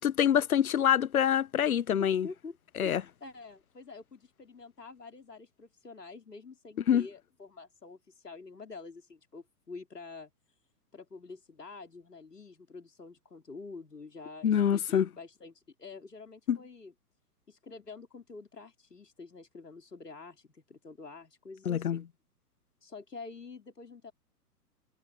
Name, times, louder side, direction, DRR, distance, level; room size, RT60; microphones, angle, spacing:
voice 1, 0.0-2.3 2.8-3.0 6.9-7.1 14.4-15.1 16.5-16.6 21.7-22.0, left 9 dB, 60° left, 0.8 m, -25 dB
voice 2, 2.0-10.3 10.9-16.9 17.5-22.1 22.8-24.1, left 4 dB, 75° left, 3.2 m, -47 dB
figure-of-eight pair, 120°, 48 cm